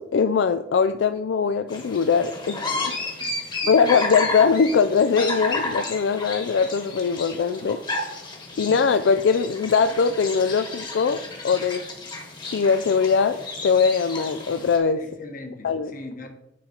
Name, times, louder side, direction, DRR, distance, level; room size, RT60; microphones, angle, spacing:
voice 1, 0.0-3.2 3.7-7.8 8.6-11.8 12.5-15.0 15.6-15.9, left 5 dB, 70° left, 10 dB, 0.3 m, -21 dB
sound 1, 1.7-14.8, left 2 dB, 25° left, 1.3 m, -32 dB
voice 2, 3.2-3.7 15.0-16.3, left 2 dB, 50° left, 4 dB, 1.2 m, -40 dB
9.9 x 3.9 x 4.3 m, 0.91 s
head